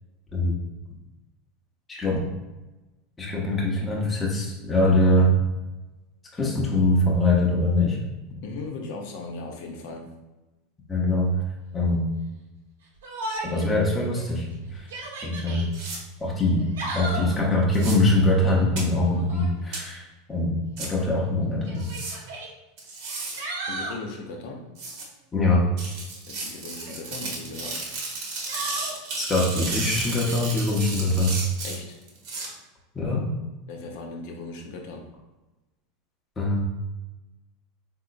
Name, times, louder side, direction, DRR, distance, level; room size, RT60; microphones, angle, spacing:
voice 1, 1.9-2.2 3.2-5.3 6.3-8.0 10.9-11.3 11.7-12.1 13.5-14.9 15.2-15.7 16.2-21.9 25.3-25.6 29.2-31.3 32.9-33.3 36.4-36.6, left 2 dB, 20° left, -3 dB, 0.8 m, -23 dB
voice 2, 8.4-10.1 23.7-24.7 26.3-27.9 31.6-32.0 33.7-35.1, left 3 dB, 65° left, 2 dB, 0.7 m, -37 dB
Yell, 13.0-13.7 14.1-14.2 14.8-15.7 16.5-17.4 19.1-19.6 20.7-20.8 21.7-22.5 23.0-24.0 26.6-27.3 28.5-29.0, right 2 dB, 85° right, 1.1 m, -34 dB
sound 1, 15.7-16.0 17.7-17.9 18.8-18.9 19.7-19.8 20.8-20.9 21.8-22.1 22.8-23.4 24.8-25.0 25.8-32.5, right 3 dB, 60° right, 1.0 m, -33 dB
3.7 x 2.8 x 2.5 m, 1.1 s
hypercardioid pair, 100°, 0 cm